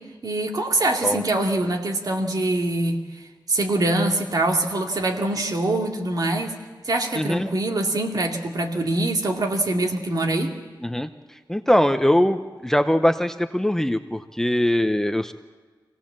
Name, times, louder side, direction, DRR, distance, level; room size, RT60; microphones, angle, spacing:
voice 1, 0.2-3.0 3.5-6.5 6.8-10.5, right 2 dB, 55° right, 2 dB, 2.3 m, -24 dB
voice 2, 7.2-7.5 10.8-11.1 11.5-15.3, left 1 dB, 5° left, 8 dB, 0.7 m, -21 dB
25.0 x 17.5 x 7.4 m, 1.4 s
wide cardioid pair, 140°, 8 cm